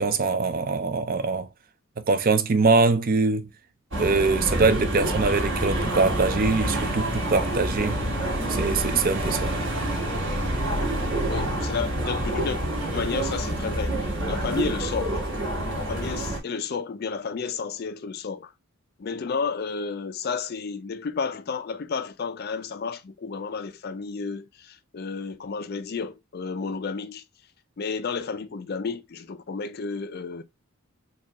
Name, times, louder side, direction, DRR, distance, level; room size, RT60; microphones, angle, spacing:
voice 1, 0.0-1.5 2.0-3.5 4.0-8.0 8.5-9.5, right 4 dB, 40° right, 0.4 m, -23 dB
sound 1, 3.9-16.4, right 1 dB, 55° right, 1.6 m, -27 dB
voice 2, 11.3-12.6 12.9-15.2 15.7-18.5 19.0-27.2 27.8-30.4, left 5 dB, 45° left, 0.4 m, -32 dB
4.3 x 2.4 x 2.8 m
head